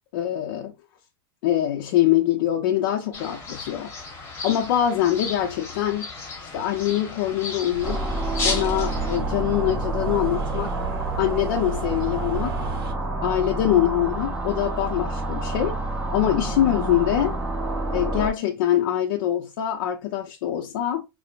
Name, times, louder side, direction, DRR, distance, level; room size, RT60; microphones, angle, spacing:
voice 1, 0.1-0.7 1.4-3.9 4.4-6.1 6.4-8.0 8.4-10.7 11.2-12.6 13.2-15.8 16.1-17.4 17.9-21.1, left 12 dB, 65° left, 0.5 m, -24 dB
sound 1, 3.1-9.2, left 3 dB, 20° left, 1.1 m, -34 dB
sound 2, 7.7-12.9, right 5 dB, 75° right, 0.6 m, -35 dB
sound 3, 7.8-18.3, right 2 dB, 10° right, 0.8 m, -28 dB
4.4 x 2.0 x 2.5 m
supercardioid pair, 130°, 13 cm